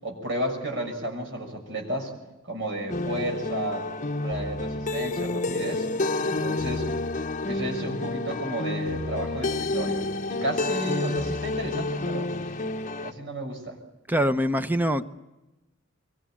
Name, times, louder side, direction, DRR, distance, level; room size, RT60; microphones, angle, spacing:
voice 1, 0.0-2.1 2.5-3.9 4.2-5.9 6.2-6.9 7.5-12.3 13.0-13.8, right 1 dB, 65° right, 6.4 m, -32 dB
sound 1, 2.9-13.1, left 2 dB, 40° left, 0.9 m, -29 dB
voice 2, 14.1-15.0, equal, 10° right, 0.8 m, -23 dB
24.5 x 23.0 x 8.9 m
head